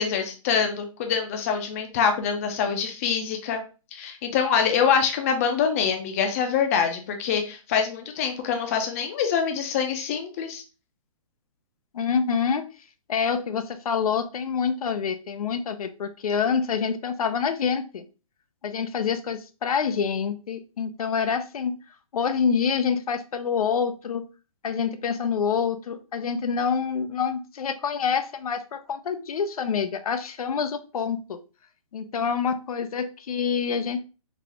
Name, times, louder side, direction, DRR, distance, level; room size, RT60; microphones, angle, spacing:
voice 1, 0.0-3.6 3.9-10.6, left 7 dB, 25° left, 5 dB, 0.5 m, -25 dB
voice 2, 11.9-12.7 13.1-18.1 18.6-21.8 22.1-24.2 24.6-31.4 31.9-34.0, left 6 dB, 90° left, 10 dB, 0.5 m, -26 dB
3.9 x 2.4 x 2.8 m, 0.32 s
hypercardioid pair, 160°, 18 cm